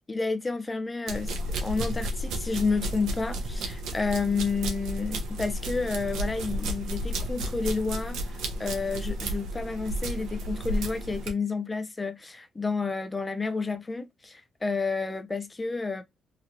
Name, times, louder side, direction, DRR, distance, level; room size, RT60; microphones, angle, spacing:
voice 1, 0.1-1.3 1.6-16.0, left 4 dB, 20° left, 0.5 m, -30 dB
sound 1, 1.1-11.3, right 1 dB, 85° right, 0.7 m, -32 dB
2.9 x 2.8 x 2.5 m
cardioid pair, 90°, 0 cm